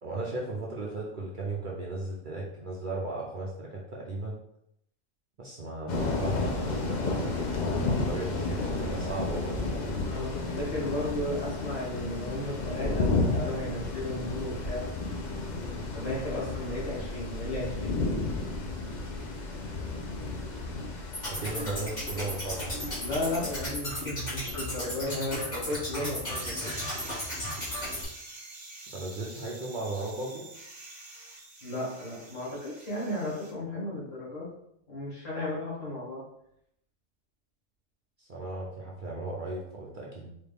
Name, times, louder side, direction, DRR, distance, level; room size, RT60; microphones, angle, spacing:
voice 1, 0.0-4.4 5.4-7.5 7.9-9.6 20.5-20.6 21.2-22.7 28.9-30.5 38.2-40.3, right 2 dB, 50° right, -3 dB, 0.7 m, -36 dB
sound 1, 5.9-23.7, left 3 dB, 50° left, 0.5 m, -32 dB
voice 2, 10.1-14.9 15.9-18.0 23.0-26.7 31.6-34.5 34.9-36.2, left 1 dB, 75° left, -5 dB, 1.9 m, -34 dB
sound 2, 21.1-28.0, left 1 dB, 35° left, 1.5 m, -35 dB
sound 3, 26.3-33.5, right 2 dB, 85° right, 1.4 m, -45 dB
4.2 x 2.4 x 3.4 m, 0.76 s
omnidirectional pair, 1.3 m